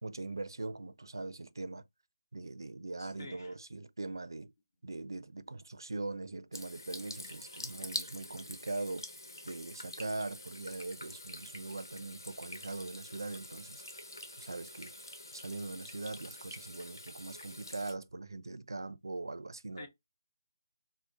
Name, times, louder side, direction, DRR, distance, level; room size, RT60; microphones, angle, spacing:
voice 1, 0.0-1.8 2.3-4.5 4.8-9.1 9.4-13.8 14.4-14.9 15.3-19.9, right 2 dB, 80° right, 0.4 m, -41 dB
voice 2, 3.0-3.5 19.8-19.9, left 3 dB, 50° left, 1.4 m, -48 dB
Water tap faucet / Sink (filling or washing), 6.5-17.9, left 1 dB, 85° left, 1.1 m, -46 dB
4.7 x 2.0 x 2.5 m
figure-of-eight pair, 155°, 2 cm